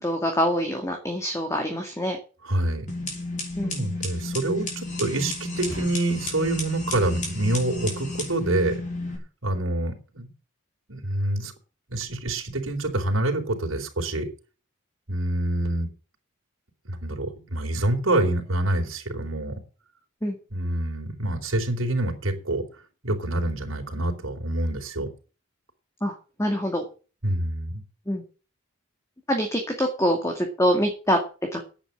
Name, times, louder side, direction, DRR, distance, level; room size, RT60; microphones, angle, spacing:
voice 1, 0.0-2.2 3.6-3.9 20.2-20.4 26.0-26.8 28.1-28.2 29.3-31.2 31.5-31.6, equal, 15° left, 3 dB, 2.2 m, -25 dB
voice 2, 2.4-2.9 3.6-8.8 9.4-10.3 10.9-11.5 11.9-14.3 15.1-15.9 16.8-19.6 20.5-22.6 23.0-25.1 27.2-27.8, right 1 dB, 75° right, 2 dB, 3.9 m, -26 dB
sound 1, 2.9-9.2, left 2 dB, 35° left, 5.7 m, -32 dB
10.5 x 8.8 x 7.3 m, 0.35 s
head